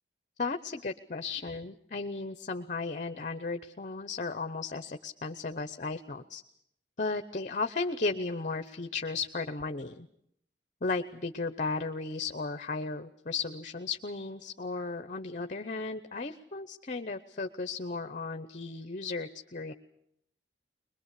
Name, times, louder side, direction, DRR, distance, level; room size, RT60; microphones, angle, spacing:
voice 1, 0.4-6.4 7.0-10.1 10.8-19.7, left 3 dB, 45° left, 8 dB, 0.9 m, -35 dB
22.5 x 21.5 x 8.3 m, 0.71 s
head